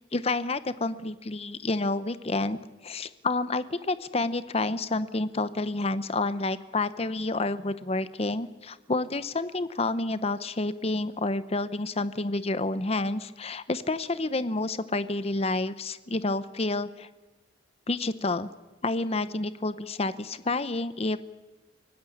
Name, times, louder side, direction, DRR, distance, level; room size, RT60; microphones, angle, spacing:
voice 1, 0.1-17.1 17.9-18.5 18.8-21.2, left 2 dB, 30° left, 14 dB, 0.8 m, -29 dB
25.0 x 18.0 x 8.6 m, 1.1 s
head